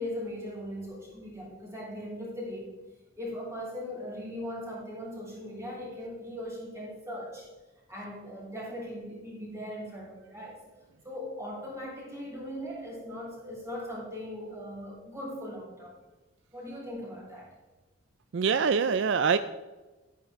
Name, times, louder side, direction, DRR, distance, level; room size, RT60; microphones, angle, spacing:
voice 1, 0.0-2.7 3.2-7.5 7.9-10.6 11.0-16.0 16.5-17.5, left 1 dB, 15° right, -5 dB, 4.3 m, -39 dB
voice 2, 18.3-19.4, right 5 dB, 60° right, 13 dB, 0.4 m, -24 dB
12.5 x 9.6 x 3.7 m, 1.2 s
head